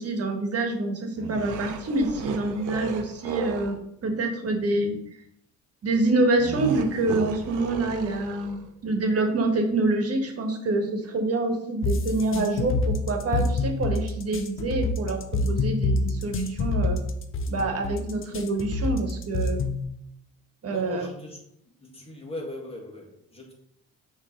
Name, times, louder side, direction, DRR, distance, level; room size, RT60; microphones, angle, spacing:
voice 1, 0.0-3.7 4.0-4.9 5.8-15.2 15.5-17.0 17.5-19.6 20.6-21.1, right 2 dB, 50° right, 1.5 m, -26 dB
sound 1, 1.2-3.8 6.4-8.7, right 7 dB, 85° right, 0.7 m, -34 dB
sound 2, 11.8-19.8, left 3 dB, 45° left, 0.7 m, -26 dB
voice 2, 20.7-21.4 21.8-23.5, left 1 dB, 20° left, 2.0 m, -39 dB
6.4 x 3.3 x 5.2 m
cardioid pair, 90°, 30 cm